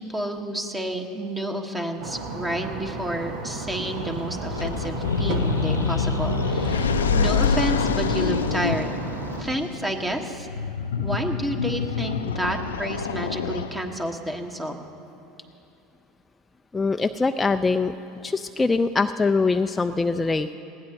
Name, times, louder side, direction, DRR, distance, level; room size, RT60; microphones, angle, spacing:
voice 1, 0.0-8.9 9.4-10.5 11.0-14.8, right 1 dB, 15° right, 4 dB, 1.3 m, -30 dB
sound 1, 2.0-9.4, right 3 dB, 70° right, 1.3 m, -33 dB
sound 2, 4.5-14.1, left 5 dB, 90° left, 0.5 m, -26 dB
voice 2, 16.7-17.9 18.2-20.5, left 4 dB, 15° left, 7 dB, 0.3 m, -23 dB
20.0 x 15.5 x 2.9 m, 2.8 s
hypercardioid pair, 80°, 0 cm